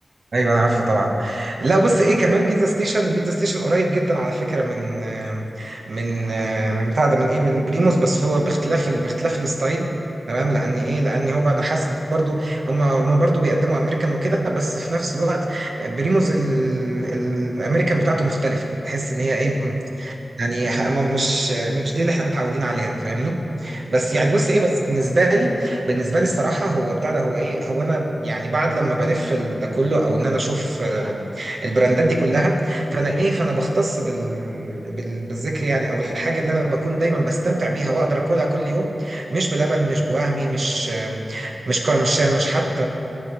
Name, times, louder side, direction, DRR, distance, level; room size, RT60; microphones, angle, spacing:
voice 1, 0.3-9.9 10.3-42.9, right 1 dB, 70° right, 1 dB, 0.8 m, -21 dB
13.5 x 4.8 x 2.9 m, 2.9 s
wide cardioid pair, 75°, 0 cm